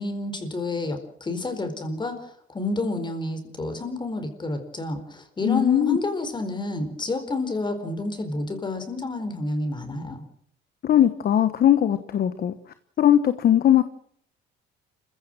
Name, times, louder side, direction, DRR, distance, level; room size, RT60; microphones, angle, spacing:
voice 1, 0.0-2.2 2.5-10.2, left 2 dB, 20° left, 8 dB, 4.5 m, -29 dB
voice 2, 5.4-6.0 10.8-12.5 13.0-13.8, left 11 dB, 50° left, 11 dB, 1.3 m, -19 dB
27.5 x 16.0 x 7.7 m, 0.64 s
cardioid pair, 125°, 21 cm